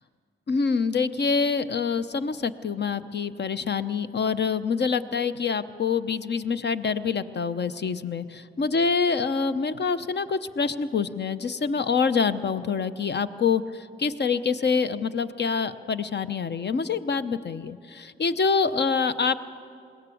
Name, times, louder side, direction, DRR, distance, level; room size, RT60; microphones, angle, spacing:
voice 1, 0.5-19.4, left 5 dB, 55° left, 12 dB, 0.8 m, -26 dB
21.5 x 17.0 x 8.5 m, 2.4 s
cardioid pair, 70°, 21 cm